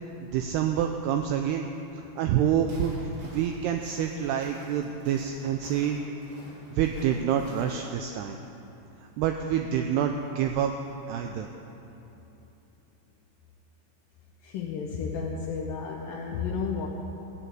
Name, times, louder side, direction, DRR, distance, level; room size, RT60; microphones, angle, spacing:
voice 1, 0.2-1.7 2.2-2.9 3.2-6.0 6.7-8.4 9.2-10.7 11.1-11.5, right 9 dB, 85° right, 4 dB, 2.4 m, -27 dB
Walk footsteps, 2.6-7.9, right 1 dB, 55° right, 4.8 m, -49 dB
voice 2, 14.4-16.9, left 5 dB, 75° left, -2 dB, 2.0 m, -32 dB
16.0 x 6.8 x 9.2 m, 2.9 s
omnidirectional pair, 5.2 m